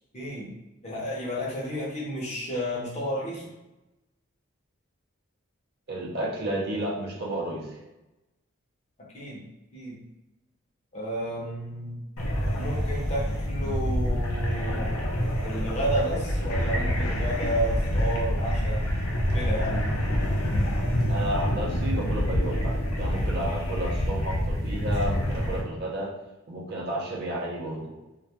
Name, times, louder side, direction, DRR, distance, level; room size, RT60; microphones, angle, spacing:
voice 1, 0.1-0.5 0.8-3.5 9.1-9.4 9.7-10.0 10.9-12.0 12.6-15.1 15.4-18.9 19.3-19.9, equal, 30° left, -5 dB, 0.6 m, -31 dB
voice 2, 5.9-7.7 21.1-26.1 26.5-28.0, right 1 dB, 50° right, -3 dB, 0.5 m, -32 dB
sound 1, 12.2-25.6, equal, 80° left, 0.5 m, -27 dB
2.2 x 2.1 x 2.8 m, 1.0 s
head